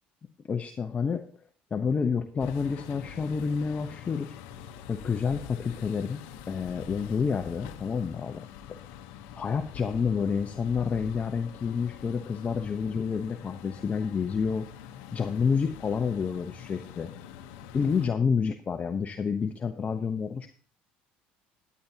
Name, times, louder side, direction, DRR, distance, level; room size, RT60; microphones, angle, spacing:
voice 1, 0.5-1.2 1.7-4.3 4.9-6.2 6.5-8.4 9.4-14.7 15.1-17.1 17.7-20.5, left 6 dB, 30° left, 6 dB, 0.9 m, -29 dB
sound 1, 2.4-18.1, left 9 dB, 75° left, 0.9 m, -45 dB
14.0 x 9.6 x 2.8 m, 0.43 s
supercardioid pair, 80°, 4 cm